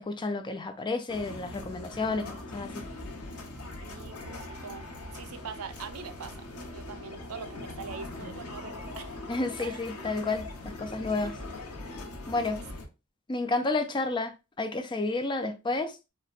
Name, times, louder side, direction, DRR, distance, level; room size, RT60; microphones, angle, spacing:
voice 1, 0.0-2.9 9.3-11.4 12.3-12.6 13.3-16.0, left 3 dB, 20° left, 0.4 m, -31 dB
sound 1, 1.1-12.9, left 2 dB, 80° left, 0.9 m, -41 dB
voice 2, 3.8-4.8 5.1-9.2 9.6-9.8, right 6 dB, 75° right, 0.4 m, -43 dB
4.1 x 2.1 x 2.4 m
head